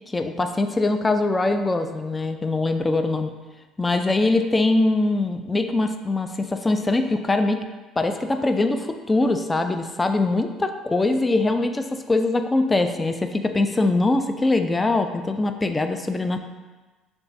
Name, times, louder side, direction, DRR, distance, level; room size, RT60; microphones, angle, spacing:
voice 1, 0.1-3.3 3.8-7.6 8.0-16.4, left 2 dB, 20° left, 7 dB, 0.3 m, -22 dB
6.6 x 2.3 x 2.7 m, 1.2 s
figure-of-eight pair, 55°, 0 cm